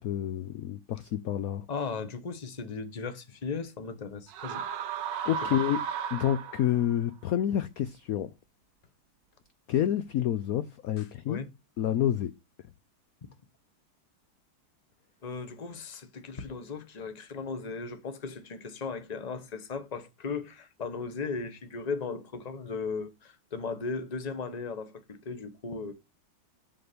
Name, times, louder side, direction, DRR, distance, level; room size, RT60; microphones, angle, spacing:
voice 1, 0.0-1.6 5.3-5.8 6.1-8.3 9.7-11.4 11.8-12.3, left 11 dB, 70° left, 0.8 m, -28 dB
voice 2, 1.7-4.6 11.3-11.5 15.2-25.9, left 4 dB, 25° left, 0.9 m, -37 dB
sound 1, 4.3-6.9, right 7 dB, 65° right, 1.4 m, -34 dB
7.7 x 3.8 x 6.7 m
omnidirectional pair, 2.2 m